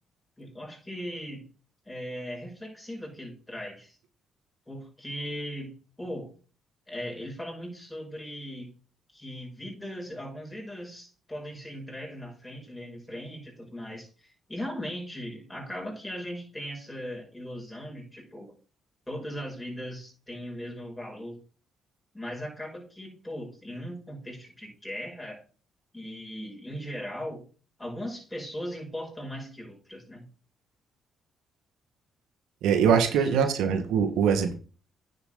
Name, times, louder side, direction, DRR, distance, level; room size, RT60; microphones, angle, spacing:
voice 1, 0.4-1.5 1.9-4.0 4.7-6.3 6.9-8.7 9.1-18.5 19.1-21.4 22.1-25.4 25.9-27.4 27.8-30.2 32.9-33.0 33.3-33.5, equal, 10° left, 6.1 m, -38 dB
voice 2, 32.6-34.6, right 7 dB, 90° right, 1.6 m, -23 dB
9.6 x 7.7 x 3.8 m
cardioid pair, 90°, 0 cm